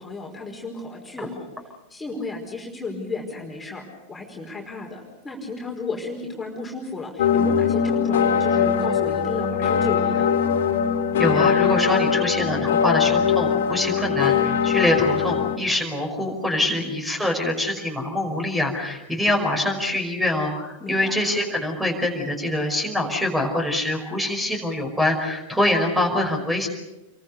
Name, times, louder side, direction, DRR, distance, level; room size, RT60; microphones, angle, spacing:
voice 1, 0.0-1.5 1.9-10.3 16.6-16.9 20.8-21.2, left 3 dB, 10° left, -1 dB, 5.0 m, -33 dB
sound 1, 7.2-15.6, left 7 dB, 60° left, 2.7 m, -21 dB
voice 2, 11.2-26.7, left 1 dB, 5° right, 4 dB, 5.4 m, -24 dB
29.0 x 23.0 x 6.9 m, 0.99 s
figure-of-eight pair, 90°, 0 cm